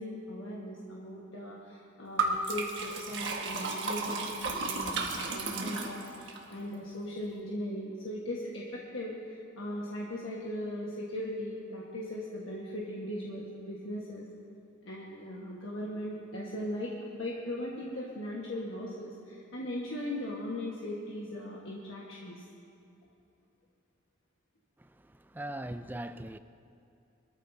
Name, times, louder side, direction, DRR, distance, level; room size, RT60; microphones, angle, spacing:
voice 1, 0.0-14.3 14.8-22.4, left 1 dB, 70° left, -4 dB, 1.4 m, -38 dB
Liquid, 2.2-6.4, right 3 dB, 65° right, 1.5 m, -33 dB
voice 2, 25.3-26.4, right 1 dB, 10° right, 10 dB, 0.3 m, -39 dB
23.0 x 14.0 x 2.7 m, 2.7 s
head